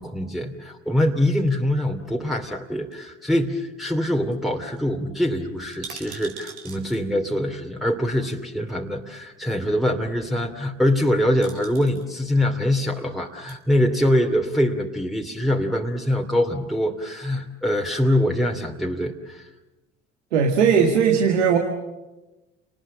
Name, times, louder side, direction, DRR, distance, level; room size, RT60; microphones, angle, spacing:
voice 1, 0.0-19.5, left 1 dB, ahead, 0 dB, 2.7 m, -24 dB
sound 1, 2.9-3.7 4.0-4.1 4.3-4.5 4.8-4.9 5.6-7.0 8.2-8.3 10.9-11.1 11.4-12.1 13.2-13.6 14.2-14.9 15.2-15.3, right 6 dB, 65° right, 4.2 m, -42 dB
voice 2, 20.3-21.6, right 6 dB, 85° right, 4 dB, 1.9 m, -18 dB
29.5 x 19.5 x 7.7 m, 1.1 s
hypercardioid pair, 60°, 34 cm